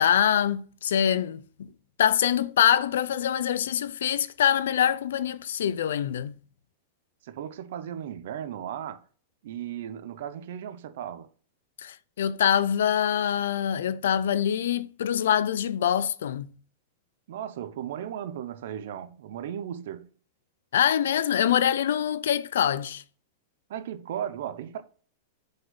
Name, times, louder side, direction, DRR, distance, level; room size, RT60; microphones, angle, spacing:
voice 1, 0.0-1.7 2.0-6.3 11.8-16.5 20.7-23.0, left 9 dB, 85° left, 0.6 m, -24 dB
voice 2, 7.2-9.0 9.4-11.3 17.3-20.1 23.7-24.8, right 10 dB, 55° right, 0.9 m, -36 dB
8.0 x 5.4 x 4.0 m
supercardioid pair, 175°, 0 cm